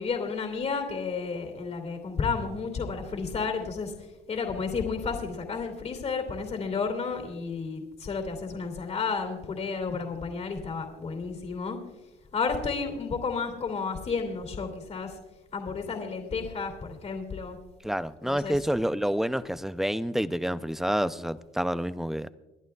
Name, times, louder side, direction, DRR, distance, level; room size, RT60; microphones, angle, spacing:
voice 1, 0.0-3.9 4.3-11.8 12.3-15.2 15.5-17.6 18.2-18.5, left 5 dB, 40° left, 4 dB, 2.8 m, -32 dB
voice 2, 17.8-22.3, equal, ahead, 13 dB, 0.5 m, -28 dB
28.5 x 11.5 x 2.4 m, 1.1 s
cardioid pair, 110°, 17 cm